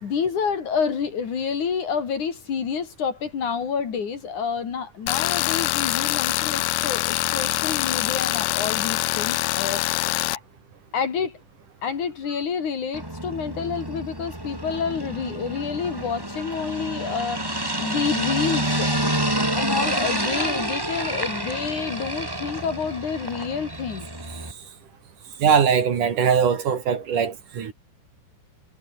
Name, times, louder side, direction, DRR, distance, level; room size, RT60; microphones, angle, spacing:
voice 1, 0.0-10.4 10.9-11.4 11.8-19.0 19.6-24.1, left 6 dB, 55° left, 4.0 m, -28 dB
Tools, 5.1-10.4, left 17 dB, 80° left, 1.8 m, -24 dB
sound 1, 12.9-24.5, right 1 dB, 5° right, 3.2 m, -28 dB
voice 2, 25.4-27.7, right 7 dB, 55° right, 3.7 m, -21 dB
omnidirectional pair, 4.5 m